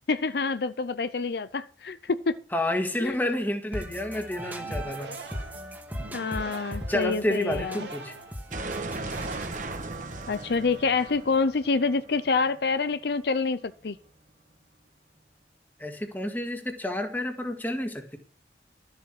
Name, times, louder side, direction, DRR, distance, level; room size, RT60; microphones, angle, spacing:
voice 1, 0.1-2.4 3.0-3.2 6.1-7.9 10.3-14.0, left 4 dB, 65° left, 13 dB, 0.5 m, -27 dB
voice 2, 2.5-5.1 6.6-8.1 15.8-18.2, left 1 dB, 10° left, 5 dB, 1.8 m, -30 dB
sound 1, 3.7-11.6, equal, 10° right, 1.6 m, -39 dB
sound 2, 4.6-10.2, right 2 dB, 75° right, 2.2 m, -44 dB
sound 3, 8.5-13.3, right 3 dB, 45° right, 1.3 m, -37 dB
13.0 x 7.7 x 6.0 m, 0.42 s
head